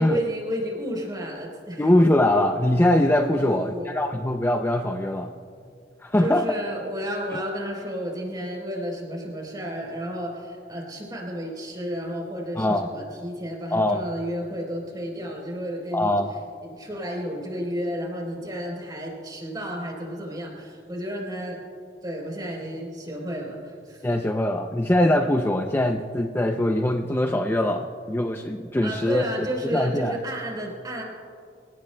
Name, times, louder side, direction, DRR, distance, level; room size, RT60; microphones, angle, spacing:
voice 1, 0.0-1.8 3.3-3.9 5.6-5.7 6.2-16.1 16.7-21.6 22.0-24.1 28.8-31.0, equal, 20° right, -1 dB, 3.8 m, -32 dB
voice 2, 1.8-5.3 6.0-6.6 12.6-12.9 13.7-14.1 15.9-16.3 24.0-30.2, left 1 dB, 15° left, 4 dB, 0.5 m, -22 dB
27.5 x 16.5 x 2.2 m, 2.4 s
head